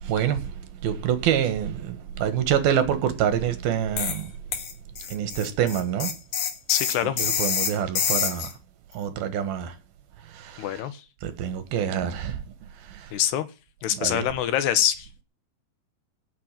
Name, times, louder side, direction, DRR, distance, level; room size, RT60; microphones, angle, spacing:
voice 1, 0.0-4.3 5.1-6.1 7.2-8.5 8.9-9.7 10.3-10.8 11.2-12.4 12.8-13.1 13.9-14.3, right 9 dB, 70° right, 3.0 m, -26 dB
sound 1, 4.0-4.2 4.5-8.5, left 7 dB, 55° left, 2.0 m, -27 dB
voice 2, 6.7-7.2 10.6-11.0 13.1-13.5 13.8-15.1, left 11 dB, 80° left, 3.3 m, -25 dB
16.5 x 6.7 x 8.9 m
omnidirectional pair, 4.7 m